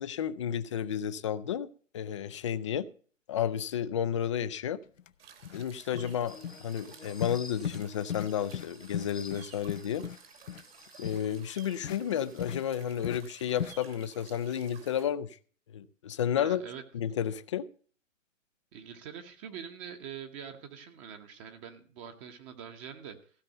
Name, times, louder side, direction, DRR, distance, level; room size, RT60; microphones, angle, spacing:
voice 1, 0.0-1.7 1.9-2.9 3.3-4.8 5.5-10.0 11.0-15.4 15.7-16.6 16.9-17.7, left 9 dB, 25° left, 0.5 m, -32 dB
sound 1, 5.0-5.1 5.4-5.7 5.9-6.2 6.4-6.6 7.2-7.4 7.6-7.8 8.1-8.3 8.5-8.7 8.9-10.2 10.5-10.6 11.0-11.2 11.8-12.0 12.4-12.6 13.0-13.2 13.6-13.7, left 9 dB, 75° left, 0.8 m, -36 dB
sound 2, 5.2-15.1, right 7 dB, 50° right, 2.3 m, -54 dB
sound 3, 6.3-12.5, left 3 dB, ahead, 0.9 m, -53 dB
voice 2, 16.4-16.8 18.7-23.3, right 8 dB, 25° right, 1.2 m, -44 dB
15.5 x 5.4 x 7.8 m
figure-of-eight pair, 135°, 39 cm